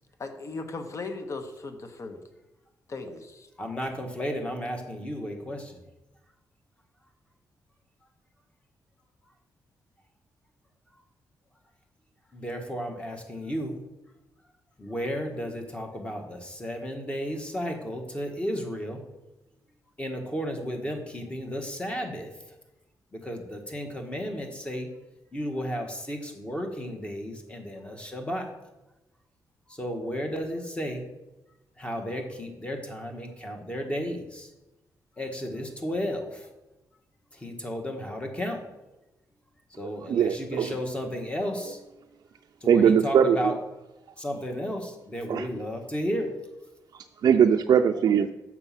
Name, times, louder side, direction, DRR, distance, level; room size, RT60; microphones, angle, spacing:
voice 1, 0.2-2.2 2.9-3.5, left 3 dB, 45° left, 7 dB, 1.0 m, -37 dB
voice 2, 3.6-5.8 12.3-13.8 14.8-19.0 20.0-22.3 23.1-24.9 25.3-28.5 29.7-31.1 31.8-34.5 35.2-36.5 37.3-38.6 39.8-41.8 42.6-43.6 44.2-46.3, equal, 15° left, 3 dB, 1.4 m, -33 dB
voice 3, 40.1-40.7 42.7-43.6 45.3-45.5 46.9-48.3, right 8 dB, 65° right, 4 dB, 0.4 m, -21 dB
6.8 x 6.0 x 5.7 m, 1.0 s
cardioid pair, 100°, 7 cm